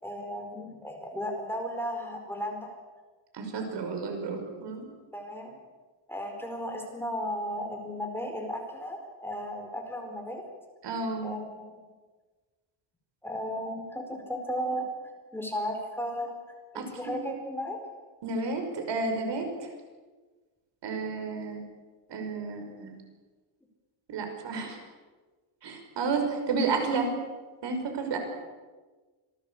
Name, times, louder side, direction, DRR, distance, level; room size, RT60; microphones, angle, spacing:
voice 1, 0.0-2.7 5.1-5.6 6.1-10.4 11.2-11.8 13.2-14.9 15.3-16.4 16.7-17.8, equal, 5° left, 2 dB, 4.6 m, -35 dB
voice 2, 3.3-4.8 10.8-11.3 16.7-17.2 18.2-19.5 20.8-21.6 22.1-22.9 24.1-24.8 25.6-27.1 27.6-28.2, right 4 dB, 60° right, 4 dB, 5.9 m, -31 dB
27.0 x 19.0 x 8.4 m, 1.3 s
cardioid pair, 145°, 49 cm